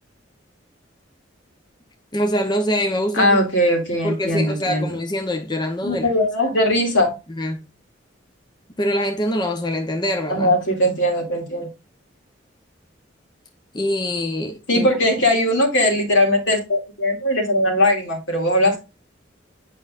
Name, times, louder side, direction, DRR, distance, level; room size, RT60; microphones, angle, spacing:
voice 1, 2.1-3.4 4.0-6.1 7.4-7.6 8.8-10.5 13.7-14.9 18.7-18.8, equal, 20° left, 0.7 m, -24 dB
voice 2, 3.1-4.9 5.8-7.1 10.3-11.7 14.7-18.8, left 1 dB, 75° left, 2.4 m, -19 dB
8.3 x 5.3 x 2.4 m
head